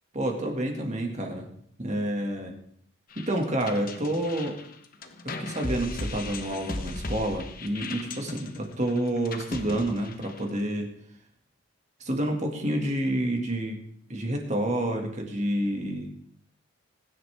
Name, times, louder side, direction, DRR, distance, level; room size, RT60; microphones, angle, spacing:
voice 1, 0.1-1.5 1.8-2.6 3.2-4.6 5.2-10.9 12.0-13.8 14.1-16.1, right 1 dB, 35° right, 2 dB, 2.2 m, -29 dB
sound 1, 3.1-10.6, left 2 dB, 40° left, 1.2 m, -37 dB
21.5 x 10.5 x 3.6 m, 0.65 s
head